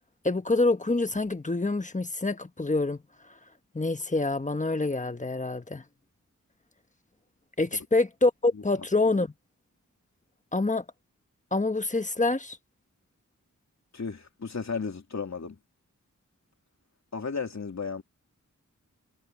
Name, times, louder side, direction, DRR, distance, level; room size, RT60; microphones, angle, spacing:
voice 1, 0.2-3.0 3.7-5.8 7.6-9.3 10.5-10.8 11.5-12.6, left 2 dB, 25° left, 1.3 m, -26 dB
voice 2, 8.5-8.9 13.9-15.6 17.1-18.0, left 5 dB, 60° left, 3.0 m, -34 dB
wide cardioid pair, 85°, 32 cm